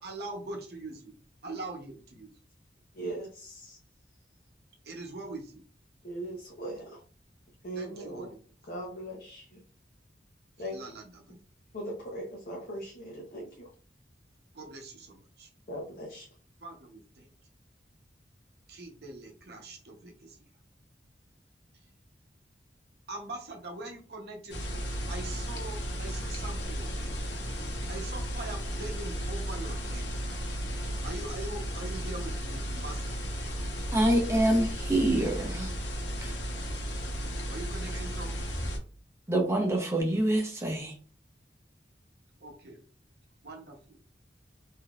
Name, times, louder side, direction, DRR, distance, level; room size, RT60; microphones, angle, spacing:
voice 1, 0.0-1.1 1.4-2.3 4.8-5.6 7.8-8.4 10.6-11.4 14.5-15.5 16.6-17.3 18.7-20.4 23.1-27.0 27.9-30.1 31.0-33.3 37.5-38.4 42.4-42.8 43.4-43.8, right 2 dB, 65° right, 2 dB, 0.8 m, -42 dB
voice 2, 2.9-3.8 6.0-7.0 7.6-8.3 8.7-9.6 10.6-10.8 11.7-13.7 15.7-16.3, right 1 dB, 55° left, -2 dB, 0.7 m, -39 dB
sound 1, 24.5-38.8, equal, 85° left, 0.9 m, -34 dB
voice 3, 33.9-35.7 36.2-36.3 39.3-40.9, right 1 dB, 15° right, 1 dB, 0.7 m, -26 dB
3.7 x 2.7 x 2.4 m, 0.39 s
head